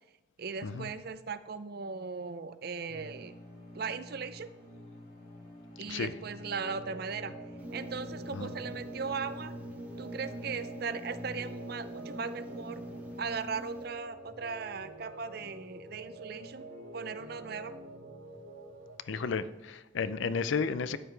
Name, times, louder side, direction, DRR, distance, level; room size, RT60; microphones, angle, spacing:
voice 1, 0.4-3.4 3.7-4.5 5.8-7.3 7.7-9.5 10.0-12.8 13.2-16.6 16.9-17.7, right 5 dB, 50° right, 12 dB, 0.5 m, -38 dB
sound 1, 2.9-13.2, left 1 dB, 50° left, 4.2 m, -48 dB
sound 2, 6.5-19.0, right 2 dB, 85° right, 2.5 m, -47 dB
sound 3, 7.6-13.8, right 1 dB, 10° right, 0.9 m, -46 dB
voice 2, 19.1-21.0, left 5 dB, 70° left, 13 dB, 0.5 m, -32 dB
12.5 x 9.4 x 3.3 m, 1.1 s
head